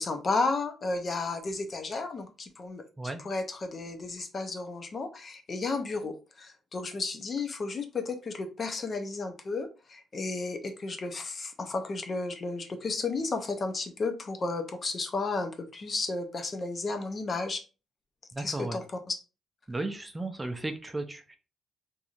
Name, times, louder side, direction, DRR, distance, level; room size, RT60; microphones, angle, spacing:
voice 1, 0.0-17.6 18.4-19.2, left 3 dB, 40° left, 0.5 m, -33 dB
voice 2, 18.3-18.8 19.7-21.4, right 2 dB, 15° right, 0.4 m, -35 dB
2.9 x 2.6 x 2.4 m
cardioid pair, 90°, 0 cm